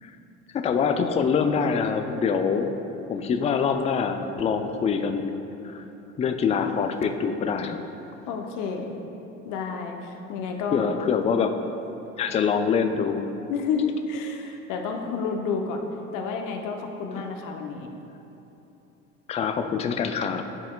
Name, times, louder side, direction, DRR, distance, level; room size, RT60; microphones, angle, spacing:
voice 1, 0.5-2.7 3.1-5.8 6.2-7.8 10.7-11.6 12.2-13.2 19.3-20.4, left 6 dB, 20° left, 7 dB, 0.3 m, -25 dB
voice 2, 8.3-8.9 9.4-11.1 13.5-15.8 16.1-17.9, left 5 dB, 55° left, 3 dB, 0.8 m, -30 dB
10.5 x 4.2 x 2.3 m, 3.0 s
hypercardioid pair, 65°, 37 cm